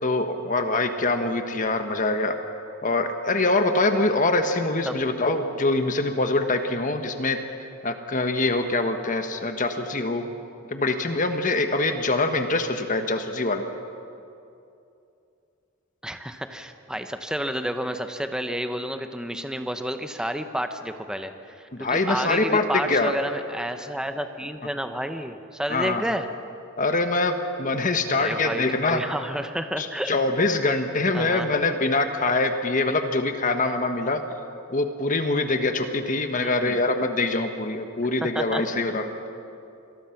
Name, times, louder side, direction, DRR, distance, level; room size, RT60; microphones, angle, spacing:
voice 1, 0.0-2.3 2.8-7.4 7.8-10.2 10.7-13.6 21.7-23.1 25.7-26.0 26.8-29.0 29.8-34.2 34.7-39.1, left 2 dB, 40° left, 7 dB, 1.3 m, -24 dB
voice 2, 16.0-26.3 28.1-30.1 31.1-31.5 36.4-36.8 38.2-38.6, equal, 5° right, 7 dB, 0.9 m, -30 dB
26.5 x 20.5 x 5.9 m, 2.7 s
head